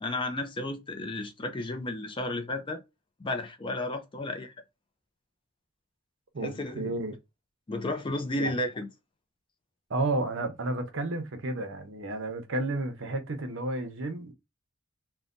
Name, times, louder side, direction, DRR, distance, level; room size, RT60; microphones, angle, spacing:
voice 1, 0.0-2.8 3.2-4.5 6.4-6.9 7.7-8.9, left 2 dB, 25° left, 0.4 m, -33 dB
voice 2, 6.3-7.1 8.4-8.5 9.9-14.3, right 2 dB, 65° right, 0.7 m, -32 dB
3.1 x 2.2 x 2.4 m
head